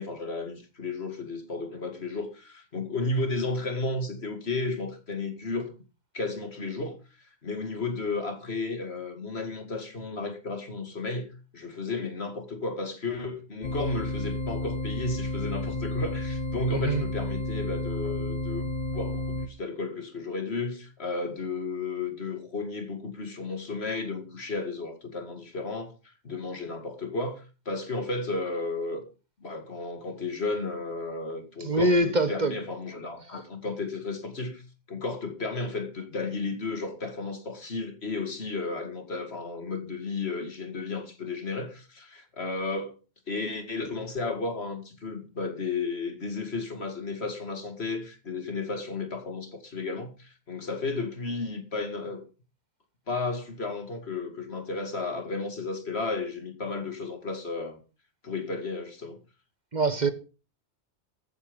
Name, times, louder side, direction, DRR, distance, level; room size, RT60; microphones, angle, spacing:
voice 1, 0.0-5.7 6.1-29.0 29.4-34.6 34.9-42.9 43.3-52.2 53.1-57.8 58.2-59.2, left 3 dB, 65° left, 2.4 m, -33 dB
sound 1, 13.6-19.5, left 1 dB, 45° left, 1.2 m, -31 dB
voice 2, 16.7-17.1 31.6-32.5 59.7-60.1, right 2 dB, 40° right, 1.3 m, -24 dB
14.5 x 8.7 x 5.2 m
omnidirectional pair, 1.2 m